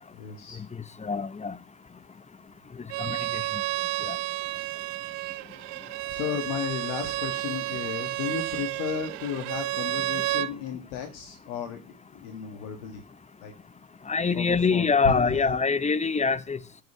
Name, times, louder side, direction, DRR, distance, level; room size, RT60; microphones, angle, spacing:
voice 1, 0.1-0.6 5.2-5.3 6.1-13.0 13.4-13.5 14.3-15.6, left 8 dB, 75° left, 1.6 m, -34 dB
voice 2, 1.0-1.6 3.0-3.4 4.0-4.2 14.1-16.6, left 4 dB, 15° left, 0.7 m, -24 dB
Bowed string instrument, 2.9-10.5, right 18 dB, 70° right, 0.8 m, -31 dB
9.2 x 5.5 x 8.1 m
hypercardioid pair, 75°, 43 cm